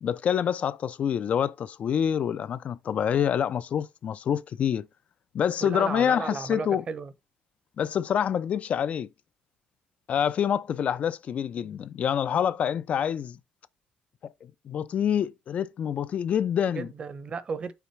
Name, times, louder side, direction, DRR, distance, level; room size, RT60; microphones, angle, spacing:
voice 1, 0.0-4.9 5.3-6.8 7.8-9.1 10.1-13.4 14.2-14.3 14.7-16.9, left 8 dB, 45° left, 0.4 m, -26 dB
voice 2, 5.6-7.1 16.8-17.7, right 5 dB, 35° right, 0.7 m, -34 dB
5.7 x 3.9 x 4.5 m
cardioid pair, 135°, 3 cm